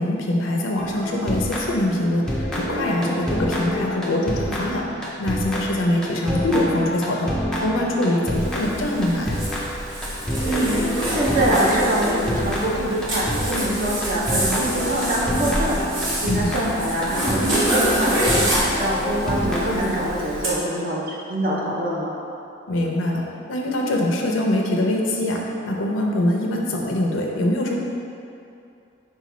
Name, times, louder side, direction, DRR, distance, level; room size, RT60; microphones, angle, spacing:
voice 1, 0.0-7.3 7.6-9.5 13.5-13.8 16.2-16.5 22.7-23.2 23.5-27.8, left 1 dB, 85° left, 0 dB, 0.5 m, -23 dB
sound 1, 0.8-2.0 2.3-20.1, equal, 5° left, 0.4 m, -28 dB
Zipper (clothing), 8.3-20.5, equal, 80° right, 1.0 m, -26 dB
voice 2, 10.4-22.1, right 1 dB, 45° right, -4 dB, 0.6 m, -24 dB
4.0 x 2.3 x 4.1 m, 2.6 s
head